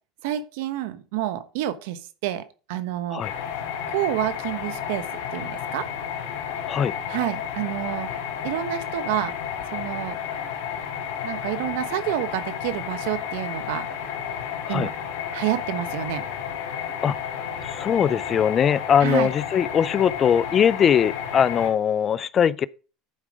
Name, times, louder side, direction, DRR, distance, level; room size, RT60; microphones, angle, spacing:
voice 1, 0.2-2.4 2.7-3.2 3.9-5.0 5.3-5.9 7.1-8.1 8.4-9.3 9.7-10.2 11.2-13.9 14.7-14.9 15.3-16.2 19.0-19.3, right 13 dB, 75° right, 1.1 m, -28 dB
sound 1, 3.2-21.7, left 8 dB, 75° left, 2.6 m, -32 dB
voice 2, 17.6-22.7, left 8 dB, 35° left, 0.4 m, -21 dB
11.0 x 4.9 x 5.0 m
supercardioid pair, 110°, 0 cm